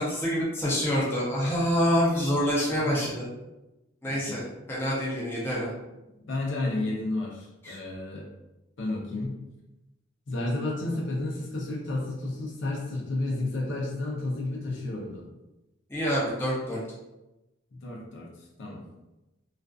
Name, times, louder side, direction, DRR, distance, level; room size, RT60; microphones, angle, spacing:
voice 1, 0.0-3.2 4.0-5.7 7.6-7.8 15.9-16.8, equal, 10° left, -7 dB, 0.5 m, -26 dB
voice 2, 2.7-3.1 4.0-4.4 6.3-8.3 8.8-9.4 10.3-15.2 17.7-18.3 18.6-18.8, left 2 dB, 65° left, -2 dB, 0.5 m, -32 dB
2.4 x 2.3 x 2.3 m, 0.99 s
head